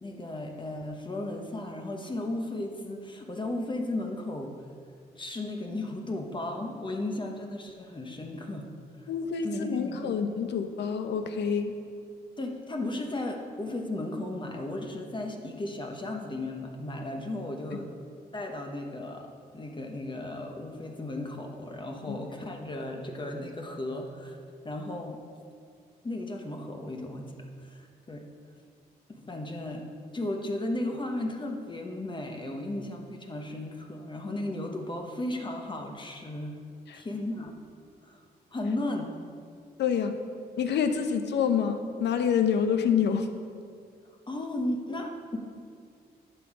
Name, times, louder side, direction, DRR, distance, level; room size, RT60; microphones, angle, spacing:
voice 1, 0.0-4.6 5.2-8.7 9.4-10.2 10.4-10.5 12.4-17.9 18.3-19.3 19.5-24.4 24.6-25.2 26.0-28.2 29.1-29.8 30.1-36.6 36.9-37.5 38.0-38.2 38.5-39.2 44.3-45.4, left 1 dB, 25° left, 2 dB, 1.0 m, -35 dB
voice 2, 9.1-11.7 22.1-22.2 36.9-37.0 39.8-40.2 40.6-43.3, left 7 dB, 80° left, 8 dB, 0.8 m, -27 dB
11.0 x 6.3 x 4.8 m, 2.2 s
cardioid pair, 90°, 18 cm